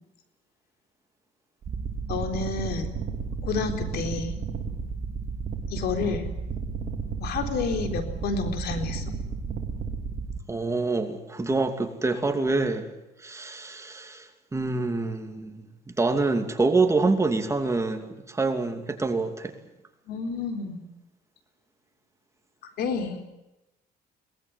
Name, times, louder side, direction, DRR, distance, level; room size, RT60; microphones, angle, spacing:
sound 1, 1.6-10.4, right 5 dB, 50° right, 3.0 m, -33 dB
voice 1, 2.1-2.9 3.4-4.3 5.7-6.3 7.2-9.2 20.1-20.8 22.8-23.2, left 5 dB, 70° left, 6 dB, 4.0 m, -30 dB
voice 2, 10.5-12.9 13.2-19.5, right 3 dB, 15° right, 6 dB, 2.7 m, -26 dB
22.5 x 19.5 x 9.6 m, 0.95 s
cardioid pair, 110°, 17 cm